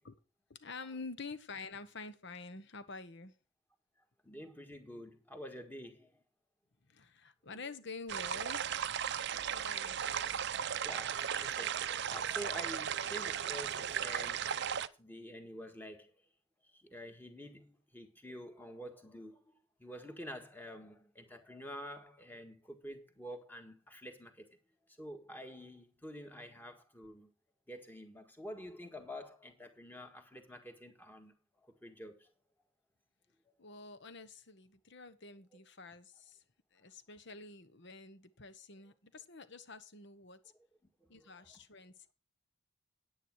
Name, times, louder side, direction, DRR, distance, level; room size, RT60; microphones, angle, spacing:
voice 1, 0.5-3.3 6.9-8.7 9.5-10.2 29.0-29.1 33.6-36.4 36.7-40.4 41.1-42.1, left 4 dB, 55° left, 1.1 m, -48 dB
voice 2, 4.2-6.1 9.3-9.4 10.8-14.6 15.0-16.1 16.7-19.5 19.8-24.5 25.0-27.3 27.7-31.3 31.8-32.3 41.1-41.5, equal, 10° left, 1.7 m, -48 dB
sound 1, 8.1-14.9, right 8 dB, 55° right, 0.5 m, -36 dB
10.0 x 9.6 x 4.7 m
head